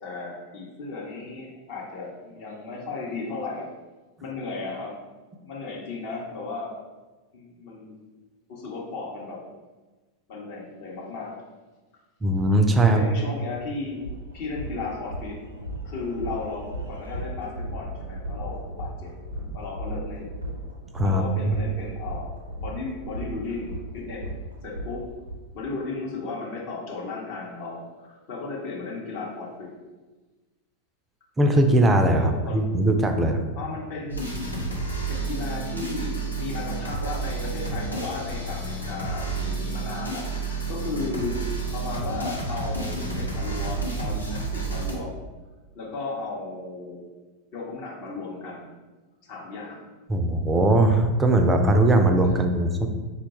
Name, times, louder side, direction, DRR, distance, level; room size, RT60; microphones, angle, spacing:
voice 1, 0.0-3.7 4.2-5.0 5.4-6.7 7.3-7.9 8.5-9.4 10.3-11.4 12.9-14.0 14.3-15.4 15.8-19.1 19.5-20.3 21.0-24.2 24.6-25.1 25.5-29.7 32.2-32.6 33.6-34.6 35.0-41.4 41.7-45.2 45.7-47.0 47.5-48.7 49.2-49.8, left 3 dB, 50° left, -4 dB, 0.7 m, -35 dB
voice 2, 12.2-13.0 20.9-21.6 31.4-33.5 50.1-52.9, right 1 dB, 15° right, 5 dB, 0.3 m, -20 dB
sound 1, 13.5-13.6 14.0-25.4, right 1 dB, 80° right, 0.4 m, -36 dB
sound 2, 34.1-44.9, right 3 dB, 85° left, 0.6 m, -30 dB
3.8 x 2.2 x 2.8 m, 1.2 s
figure-of-eight pair, 90°, 0 cm